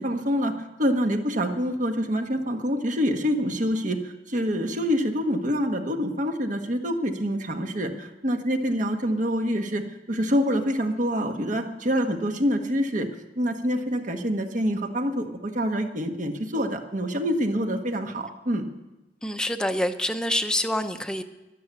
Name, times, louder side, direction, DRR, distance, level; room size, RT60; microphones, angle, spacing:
voice 1, 0.0-13.1 13.3-18.6, equal, 45° right, 5 dB, 1.5 m, -26 dB
voice 2, 19.2-21.2, left 1 dB, 5° left, 7 dB, 0.8 m, -26 dB
12.5 x 12.0 x 8.5 m, 1.0 s
head